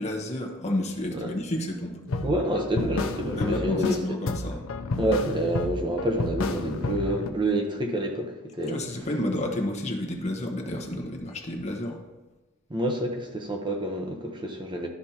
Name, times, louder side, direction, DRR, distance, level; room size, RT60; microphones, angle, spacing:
voice 1, 0.0-2.0 3.3-4.6 8.7-12.0, left 1 dB, 30° left, 1 dB, 1.1 m, -30 dB
sound 1, 2.1-4.0 4.3-7.3, left 2 dB, 65° left, 0.6 m, -31 dB
voice 2, 2.2-4.0 5.0-8.8 12.7-14.9, right 1 dB, 20° right, 2 dB, 0.8 m, -28 dB
12.5 x 5.2 x 2.9 m, 1.1 s
head